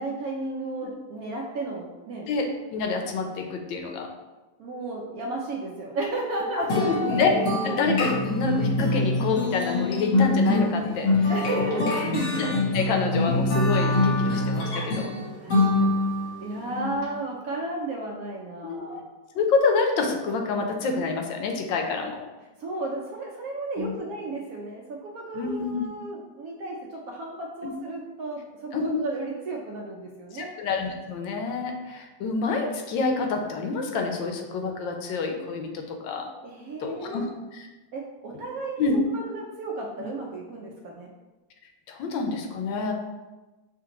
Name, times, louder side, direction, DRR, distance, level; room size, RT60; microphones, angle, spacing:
voice 1, 0.0-2.3 4.6-6.9 7.7-7.8 11.3-12.2 15.4-16.1 16.4-19.0 22.6-30.6 36.4-37.3 37.9-41.1, right 2 dB, 70° right, -1 dB, 0.9 m, -34 dB
voice 2, 2.3-4.1 6.6-6.7 7.0-7.3 7.6-11.8 12.1-15.1 16.7-16.9 18.6-19.0 19.3-22.2 23.8-24.0 25.3-25.9 27.6-27.7 28.7-29.0 30.3-36.3 36.8-37.3 37.5-37.7 38.8-39.0 40.0-40.1 41.9-42.9, left 4 dB, 90° left, 4 dB, 1.4 m, -28 dB
sound 1, 6.7-16.3, left 2 dB, 55° left, 1.0 m, -24 dB
6.4 x 2.5 x 2.9 m, 1.2 s
omnidirectional pair, 2.0 m